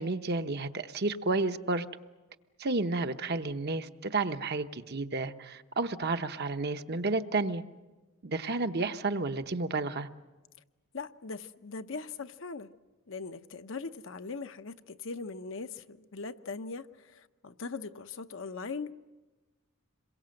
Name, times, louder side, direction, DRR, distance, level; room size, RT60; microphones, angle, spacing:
voice 1, 0.0-1.9 2.6-7.6 8.2-10.1, right 3 dB, 50° right, 0.9 m, -31 dB
voice 2, 10.9-12.7 13.1-19.0, left 4 dB, 65° left, 0.8 m, -40 dB
27.0 x 22.5 x 7.7 m
head